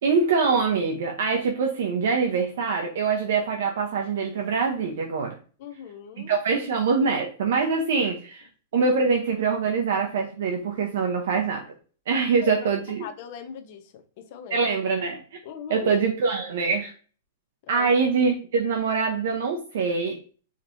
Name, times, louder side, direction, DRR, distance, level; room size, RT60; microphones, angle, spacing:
voice 1, 0.0-5.4 6.2-8.5 8.7-11.6 12.1-13.1 14.5-15.2 15.7-16.9 17.7-20.2, right 5 dB, 55° right, 3 dB, 0.7 m, -24 dB
voice 2, 5.6-6.3 8.0-8.1 12.4-12.5 13.0-14.7 15.4-15.9 17.7-17.9, left 8 dB, 35° left, 4 dB, 0.6 m, -40 dB
5.1 x 2.9 x 2.6 m, 0.39 s
supercardioid pair, 180°, 0 cm